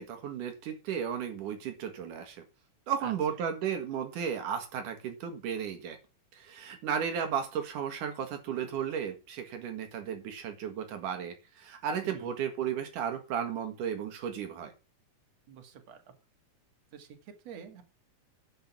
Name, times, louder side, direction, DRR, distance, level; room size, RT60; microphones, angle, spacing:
voice 1, 0.0-2.4 2.9-6.0 6.3-14.7, right 8 dB, 80° right, 6 dB, 3.1 m, -34 dB
voice 2, 15.5-16.1 16.9-17.8, right 8 dB, 55° right, 6 dB, 3.1 m, -47 dB
11.0 x 8.9 x 6.0 m, 0.30 s
omnidirectional pair, 3.6 m